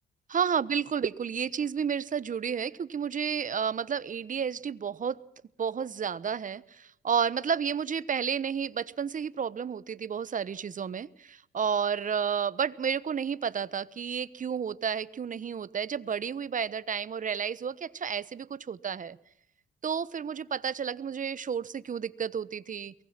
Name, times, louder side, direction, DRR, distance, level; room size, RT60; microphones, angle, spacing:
voice 1, 0.3-5.2 5.6-19.2 19.8-22.9, right 7 dB, 40° right, 18 dB, 1.1 m, -31 dB
23.0 x 20.0 x 7.4 m, 0.76 s
cardioid pair, 90°, 20 cm